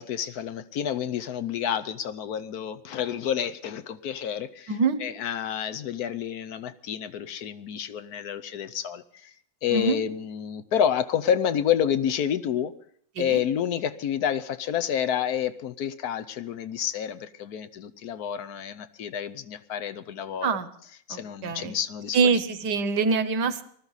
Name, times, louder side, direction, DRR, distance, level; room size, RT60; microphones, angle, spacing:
voice 1, 0.0-9.3 9.6-12.7 13.2-20.5 21.1-22.4, left 9 dB, 60° left, 13 dB, 1.1 m, -29 dB
voice 2, 4.7-5.0 9.7-10.0 13.2-13.4 20.4-20.7 21.1-21.8 22.1-23.6, right 5 dB, 60° right, 12 dB, 1.5 m, -24 dB
20.0 x 13.5 x 4.1 m, 0.62 s
omnidirectional pair, 2.2 m